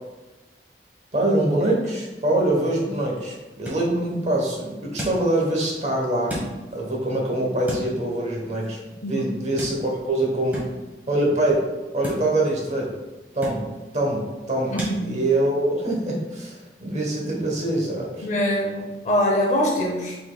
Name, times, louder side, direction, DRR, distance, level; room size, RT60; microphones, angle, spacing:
voice 1, 1.1-6.4 6.7-8.8 9.1-10.7 11.1-11.7 11.9-12.9 13.3-13.7 13.9-18.3, right 1 dB, 40° right, -1 dB, 1.1 m, -24 dB
sound 1, 3.4-15.0, equal, 10° right, 1.3 m, -39 dB
voice 2, 9.0-9.3 14.7-15.2 18.2-20.2, left 1 dB, 40° left, -1 dB, 0.7 m, -23 dB
5.6 x 4.0 x 2.3 m, 1.1 s
head